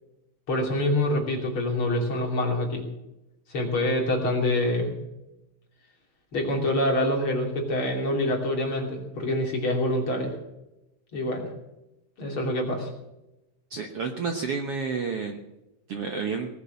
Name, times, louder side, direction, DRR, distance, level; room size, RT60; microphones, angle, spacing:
voice 1, 0.5-2.8 3.5-4.9 6.3-10.4 11.1-11.5 12.2-12.9, left 1 dB, 40° left, 0 dB, 3.5 m, -26 dB
voice 2, 13.7-15.4 15.9-16.5, right 5 dB, 60° right, 4 dB, 1.7 m, -30 dB
19.0 x 8.3 x 7.5 m, 0.94 s
omnidirectional pair, 3.8 m